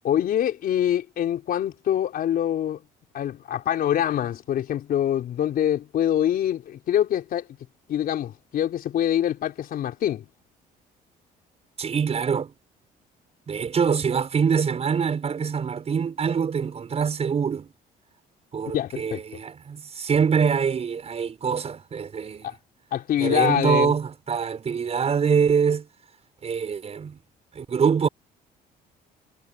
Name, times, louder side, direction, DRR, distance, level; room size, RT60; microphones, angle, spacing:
voice 1, 0.0-2.8 3.1-7.5 7.9-10.2 18.7-19.2 22.4-22.5 22.9-23.9, left 10 dB, 60° left, 4.4 m, -25 dB
voice 2, 11.8-12.5 13.5-17.7 18.5-22.5 23.2-25.9 26.4-27.2 27.5-28.1, right 6 dB, 40° right, 6.0 m, -24 dB
cardioid pair, 110°, 17 cm